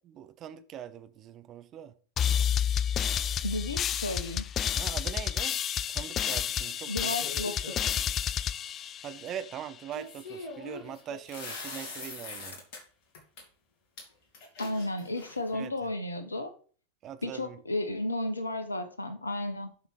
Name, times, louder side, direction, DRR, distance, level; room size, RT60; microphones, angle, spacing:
voice 1, 0.0-1.9 4.7-5.6 5.9-7.2 9.0-12.6 15.5-15.7 17.0-17.6, right 10 dB, 30° right, 0.8 m, -41 dB
sound 1, 2.2-9.7, left 9 dB, 30° left, 0.3 m, -30 dB
voice 2, 3.4-4.5 6.9-8.0 14.6-16.5 17.2-19.7, left 1 dB, 80° left, 1.3 m, -33 dB
sound 2, 7.2-7.9 9.9-12.8 13.1-13.4 14.0-14.1 14.3-15.5, left 3 dB, 45° left, 2.9 m, -42 dB
7.2 x 6.1 x 4.9 m
figure-of-eight pair, 90°, 0 cm